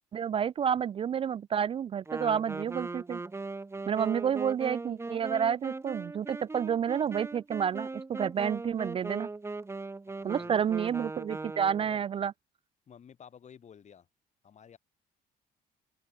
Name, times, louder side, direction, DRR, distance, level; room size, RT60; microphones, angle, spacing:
voice 1, 0.1-3.2 3.9-9.3 10.2-12.3, right 8 dB, 35° right, 0.4 m, -30 dB
Wind instrument woodwind instrument, 2.1-12.0, right 3 dB, 15° right, 1.2 m, -39 dB
voice 2, 10.1-10.7 11.8-12.0 12.9-14.1 14.4-14.8, left 8 dB, 45° left, 6.3 m, -53 dB
open air
cardioid pair, 110°, 17 cm